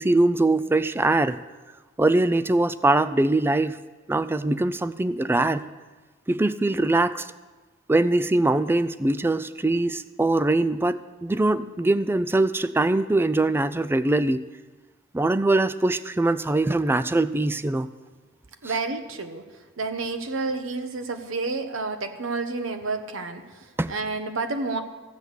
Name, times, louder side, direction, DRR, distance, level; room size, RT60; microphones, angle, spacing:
voice 1, 0.0-1.4 2.0-3.8 4.1-5.7 6.3-7.3 7.9-14.4 15.1-17.9 23.8-23.9, right 2 dB, 10° right, 14 dB, 0.3 m, -22 dB
voice 2, 18.6-19.4 19.8-24.8, right 3 dB, 85° right, 7 dB, 1.1 m, -30 dB
14.5 x 6.2 x 8.2 m, 1.3 s
head